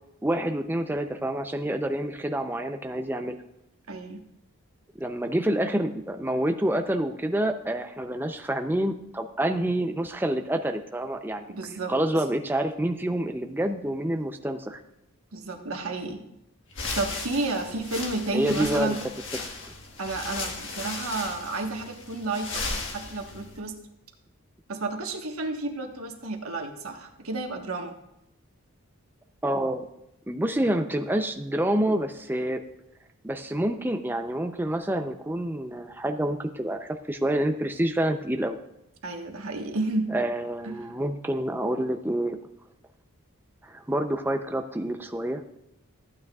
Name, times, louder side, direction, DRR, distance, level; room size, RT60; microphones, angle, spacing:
voice 1, 0.2-3.4 5.0-11.4 11.9-14.8 18.3-19.0 29.4-29.9 30.3-32.6 33.2-38.6 40.1-42.4 43.6-45.4, right 1 dB, 10° right, 6 dB, 0.5 m, -27 dB
voice 2, 3.9-4.2 11.5-11.9 15.3-16.2 16.9-19.0 20.0-23.8 24.7-28.0 39.0-40.2 40.6-40.9, right 2 dB, 70° right, 3 dB, 1.4 m, -31 dB
sound 1, 16.7-23.6, left 3 dB, 55° left, 1.5 m, -36 dB
14.5 x 9.1 x 2.4 m, 0.84 s
head